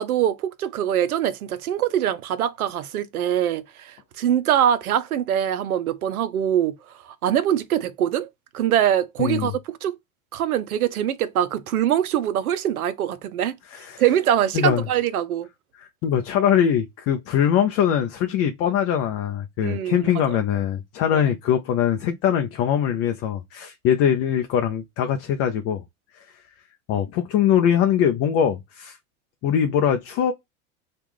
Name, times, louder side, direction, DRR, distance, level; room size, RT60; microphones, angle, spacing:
voice 1, 0.0-6.7 7.0-8.3 8.5-9.9 10.3-13.5 14.0-15.5 19.6-20.4 21.1-21.2, right 10 dB, 85° right, 0.6 m, -23 dB
voice 2, 9.2-9.5 13.7-14.0 14.5-14.9 15.8-25.8 26.2-26.3 26.9-29.0 29.4-30.3, left 9 dB, 35° left, 0.5 m, -22 dB
3.0 x 2.4 x 3.5 m
hypercardioid pair, 90°, 42 cm